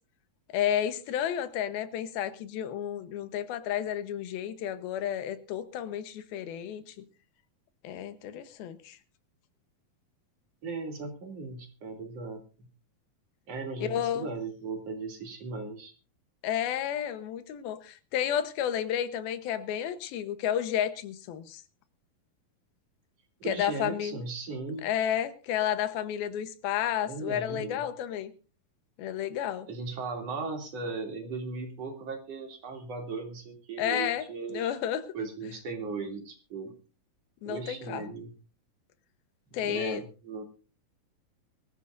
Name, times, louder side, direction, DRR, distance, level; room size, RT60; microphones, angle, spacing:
voice 1, 0.5-7.0 7.8-9.0 13.8-14.3 16.4-21.6 23.4-24.2 24.8-28.3 29.0-29.7 33.8-35.0 37.4-38.1 39.5-40.0, left 10 dB, 90° left, 12 dB, 3.0 m, -31 dB
voice 2, 10.6-12.4 13.5-15.9 23.4-24.8 27.0-27.8 29.7-34.7 35.1-36.7 37.5-38.3 39.5-40.4, right 3 dB, 45° right, 3 dB, 3.6 m, -37 dB
23.5 x 14.5 x 2.6 m, 0.34 s
omnidirectional pair, 4.2 m